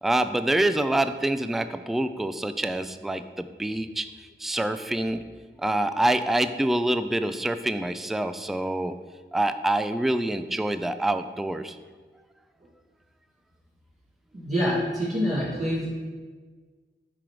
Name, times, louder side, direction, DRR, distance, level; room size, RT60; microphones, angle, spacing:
voice 1, 0.0-4.1 4.4-5.2 5.6-8.9 9.3-11.8, right 1 dB, ahead, 10 dB, 0.3 m, -26 dB
voice 2, 14.3-15.9, equal, 40° right, -10 dB, 1.7 m, -26 dB
8.7 x 3.1 x 4.9 m, 1.4 s
wide cardioid pair, 50°, 20 cm